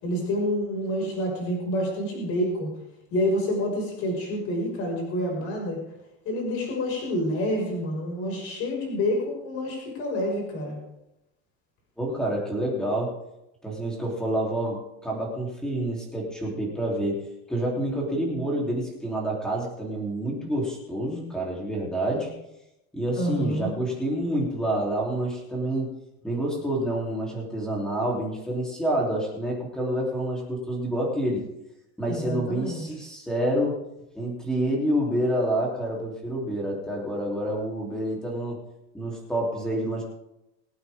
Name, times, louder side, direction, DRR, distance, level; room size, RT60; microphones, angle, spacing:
voice 1, 0.0-2.7 3.1-5.8 6.2-10.8 23.1-23.7 32.1-32.8, left 1 dB, 40° left, -1 dB, 5.7 m, -28 dB
voice 2, 12.0-13.1 13.6-22.3 22.9-25.9 26.2-31.4 32.0-33.8 34.1-38.6 38.9-40.0, right 1 dB, ahead, -3 dB, 3.4 m, -28 dB
23.0 x 8.8 x 3.7 m, 0.87 s
cardioid pair, 170°, 35 cm